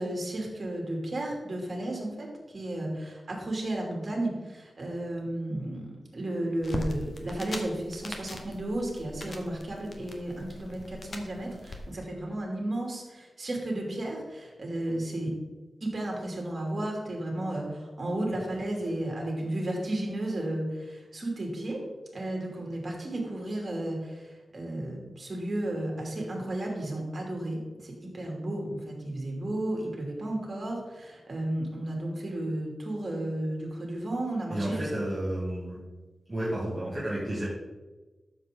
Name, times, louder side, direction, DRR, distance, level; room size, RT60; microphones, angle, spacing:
voice 1, 0.0-2.3 2.5-15.3 15.8-21.8 22.1-34.9, right 1 dB, 40° right, -1 dB, 2.8 m, -33 dB
sound 1, 6.6-11.8, left 2 dB, 45° left, 1.3 m, -40 dB
voice 2, 34.5-35.8 36.3-37.5, right 1 dB, 15° right, -8 dB, 2.6 m, -31 dB
12.5 x 7.1 x 3.8 m, 1.2 s
wide cardioid pair, 145°, 0 cm